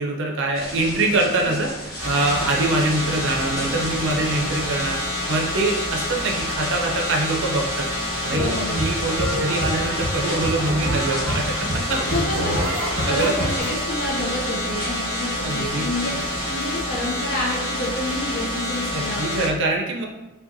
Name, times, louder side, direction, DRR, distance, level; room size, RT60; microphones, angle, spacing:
voice 1, 0.0-11.4 11.9-12.0 13.1-13.3 15.4-15.9 18.9-20.0, right 2 dB, 65° right, 0 dB, 0.5 m, -24 dB
sound 1, 0.5-16.5, equal, 20° left, 1.4 m, -36 dB
sound 2, 2.0-19.5, left 1 dB, 5° right, 0.9 m, -28 dB
voice 2, 8.2-8.8 12.0-16.1 16.5-19.4, left 1 dB, 45° left, -3 dB, 0.5 m, -28 dB
sound 3, 8.2-13.7, equal, 35° right, 1.1 m, -27 dB
5.3 x 2.2 x 2.6 m, 1.0 s
head